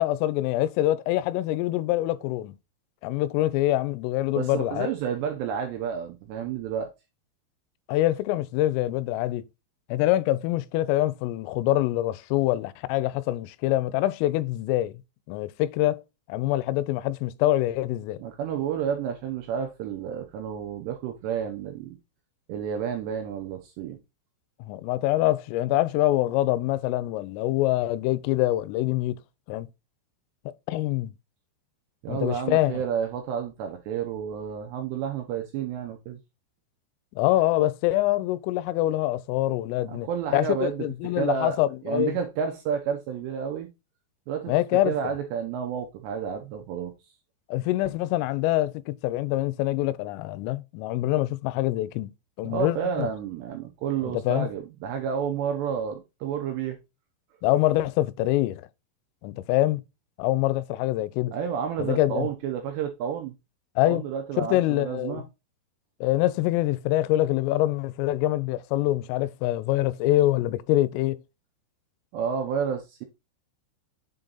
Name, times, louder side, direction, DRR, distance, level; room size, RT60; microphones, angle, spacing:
voice 1, 0.0-2.5 3.0-4.9 7.9-9.4 9.9-15.0 15.3-16.0 16.3-18.2 24.6-29.2 29.5-29.7 30.7-31.1 32.1-32.7 37.1-42.2 44.5-44.9 47.5-52.1 52.4-53.1 54.0-54.5 57.4-58.7 59.2-59.8 60.2-61.3 61.8-62.3 63.8-64.0 64.4-65.2 66.0-71.2, left 15 dB, 90° left, 3.2 m, -25 dB
voice 2, 4.4-6.9 18.2-22.0 22.5-24.0 32.0-36.2 39.9-41.6 41.8-43.7 44.3-44.5 44.9-46.9 52.4-56.8 61.3-63.3 63.8-65.2 72.1-73.1, right 7 dB, 80° right, 2.5 m, -30 dB
7.5 x 3.8 x 3.9 m
omnidirectional pair, 5.8 m